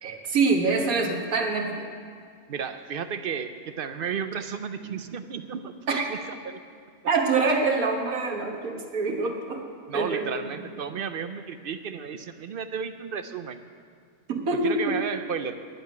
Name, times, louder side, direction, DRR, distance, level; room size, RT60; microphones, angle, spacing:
voice 1, 0.0-1.9 4.8-4.9 5.9-6.1 7.1-9.6 9.9-10.5 14.3-15.0, right 3 dB, 85° right, 1 dB, 1.8 m, -25 dB
voice 2, 2.5-5.7 6.1-6.6 9.9-13.6 14.6-15.5, right 7 dB, 60° right, 10 dB, 0.5 m, -33 dB
11.0 x 7.9 x 9.4 m, 2.1 s
omnidirectional pair, 1.5 m